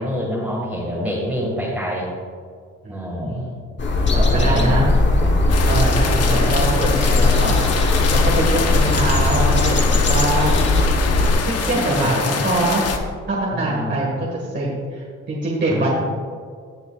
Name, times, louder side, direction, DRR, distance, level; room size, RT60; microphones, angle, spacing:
voice 1, 0.0-2.1 2.9-3.6 4.1-5.4 8.4-8.9 10.3-10.5 11.7-12.2 13.5-14.1 15.7-15.9, equal, 5° right, -6 dB, 2.0 m, -28 dB
voice 2, 2.8-3.5 4.1-4.9 5.6-7.6 8.1-9.7 10.1-10.6 11.5-12.9 13.3-15.9, right 1 dB, 35° right, -4 dB, 1.9 m, -23 dB
sound 1, 3.8-11.3, left 2 dB, 40° left, 1.3 m, -18 dB
sound 2, 5.5-13.0, left 5 dB, 55° left, 1.0 m, -25 dB
17.0 x 6.5 x 2.5 m, 2.1 s
cardioid pair, 90°, 30 cm